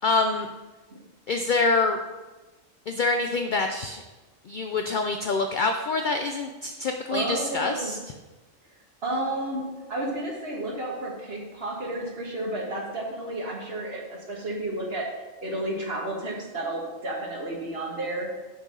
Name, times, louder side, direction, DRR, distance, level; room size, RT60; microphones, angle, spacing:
voice 1, 0.0-0.5 1.3-2.0 2.9-4.0 4.4-8.0, left 3 dB, 75° left, 5 dB, 0.4 m, -26 dB
voice 2, 7.1-7.9 9.0-15.1 15.4-18.3, right 1 dB, 50° right, -2 dB, 1.6 m, -31 dB
6.4 x 3.9 x 6.2 m, 1.2 s
omnidirectional pair, 1.4 m